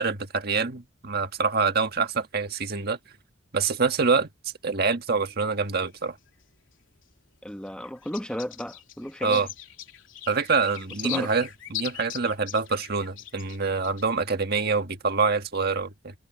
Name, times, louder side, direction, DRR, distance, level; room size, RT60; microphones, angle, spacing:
voice 1, 0.0-3.0 3.5-4.3 4.6-6.2 9.2-9.5 10.3-16.1, right 4 dB, 50° right, 1.7 m, -25 dB
sound 1, 5.6-7.0 7.4-14.0, left 12 dB, 70° left, 3.3 m, -40 dB
voice 2, 7.4-9.5 11.0-11.3, equal, 5° left, 1.3 m, -34 dB
head